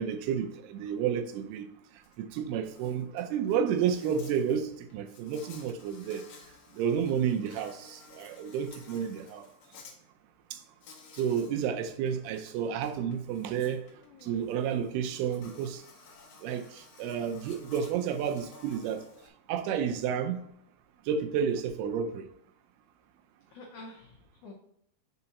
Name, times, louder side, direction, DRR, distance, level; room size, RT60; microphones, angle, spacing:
voice 1, 0.0-1.7 2.2-6.2 6.7-9.5 11.1-13.8 14.2-15.8 16.4-19.1 19.5-20.4 21.1-22.3, right 8 dB, 85° right, 2.6 m, -31 dB
Insect, 2.0-2.2 2.5-9.9 10.8-11.5 11.9-19.3, left 4 dB, 70° left, 1.9 m, -54 dB
voice 2, 14.0-14.5 23.5-24.5, left 2 dB, 85° left, 1.6 m, -49 dB
5.7 x 4.7 x 4.0 m
omnidirectional pair, 4.6 m